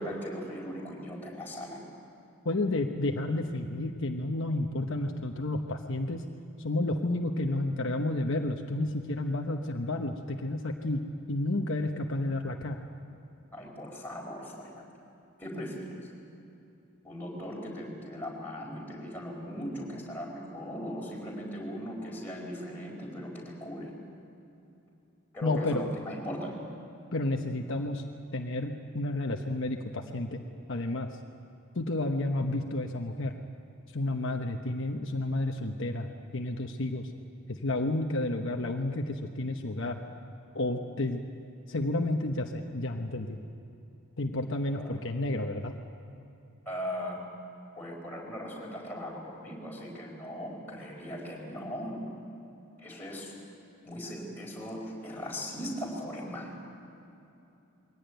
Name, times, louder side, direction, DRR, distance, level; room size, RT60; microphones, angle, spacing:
voice 1, 0.0-1.8 13.5-14.7 15.4-15.9 17.0-23.9 25.3-26.5 44.8-45.0 46.6-47.2 47.7-52.0 52.8-53.3 53.8-56.5, equal, 10° left, -3 dB, 4.7 m, -38 dB
voice 2, 2.4-6.2 6.6-11.0 11.3-12.8 25.4-25.8 27.1-28.0 28.3-30.4 30.7-31.1 31.7-33.3 33.9-36.1 36.3-37.1 37.5-40.0 40.5-41.2 41.7-43.4 44.2-45.7, left 2 dB, 60° left, 3 dB, 1.1 m, -31 dB
22.5 x 17.5 x 9.2 m, 2.9 s
head